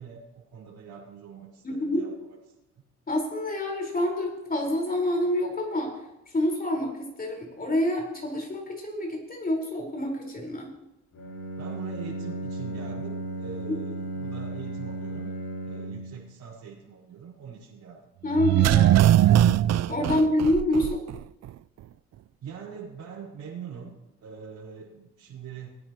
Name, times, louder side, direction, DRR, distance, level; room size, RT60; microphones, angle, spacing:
voice 1, 0.0-2.1 11.6-15.4 15.6-18.0 20.0-20.3 22.4-25.7, right 6 dB, 75° right, -9 dB, 4.6 m, -43 dB
voice 2, 1.6-2.0 3.1-5.9 6.3-10.7 18.2-19.0 19.9-21.0, left 1 dB, 30° left, -1 dB, 4.9 m, -27 dB
Bowed string instrument, 11.1-16.2, right 2 dB, 65° left, 5.2 m, -35 dB
sound 1, 18.3-21.2 21.5-21.6, right 12 dB, 60° right, 0.5 m, -20 dB
21.0 x 9.9 x 3.1 m, 0.92 s
cardioid pair, 90°, 30 cm